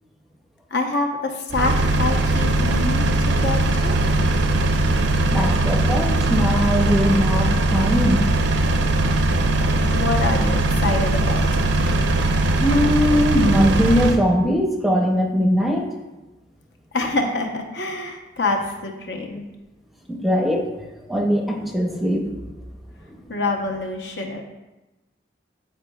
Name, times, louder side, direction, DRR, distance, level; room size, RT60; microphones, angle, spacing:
voice 1, 0.7-3.1 3.4-4.0 9.9-11.6 16.9-19.4 23.3-24.4, left 3 dB, 65° left, 3 dB, 0.8 m, -26 dB
Engine, 1.5-14.2, right 2 dB, 70° right, 0.5 m, -20 dB
voice 2, 5.3-8.3 12.6-15.9 20.1-20.7 21.1-22.4 23.1-23.2, equal, ahead, 1 dB, 0.6 m, -20 dB
11.0 x 4.4 x 2.3 m, 1.0 s
head